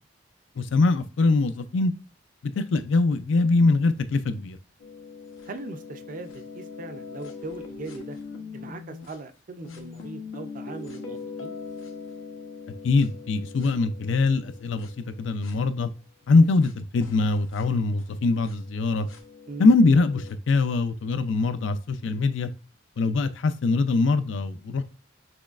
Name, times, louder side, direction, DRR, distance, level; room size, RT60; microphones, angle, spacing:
voice 1, 0.6-1.9 2.6-4.6 12.8-15.9 16.3-19.1 19.6-22.5 23.0-24.8, left 3 dB, 70° left, 11 dB, 0.4 m, -22 dB
sound 1, 4.8-9.1 9.6-15.6 16.6-16.7 17.0-20.3, left 4 dB, 90° left, 0.9 m, -41 dB
voice 2, 5.4-8.2 8.5-11.5 19.5-19.7, right 3 dB, 40° right, 8 dB, 0.5 m, -40 dB
6.1 x 3.1 x 2.4 m, 0.34 s
head